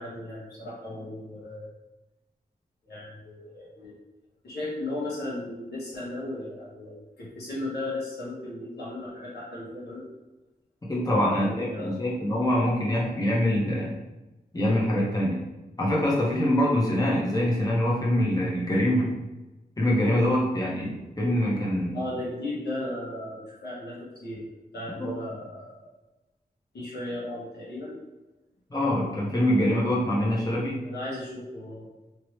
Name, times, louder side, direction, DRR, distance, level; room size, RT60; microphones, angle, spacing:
voice 1, 0.0-1.7 2.9-3.9 4.4-10.1 11.1-11.9 21.9-24.5 24.7-25.9 26.7-28.0 30.8-31.9, left 1 dB, 85° left, -7 dB, 1.4 m, -36 dB
voice 2, 10.9-13.9 14.5-15.4 15.8-19.1 19.8-22.0 25.0-25.1 28.7-30.8, left 1 dB, 20° left, -5 dB, 1.1 m, -24 dB
3.0 x 2.9 x 3.2 m, 1.1 s
cardioid pair, 55°, 17 cm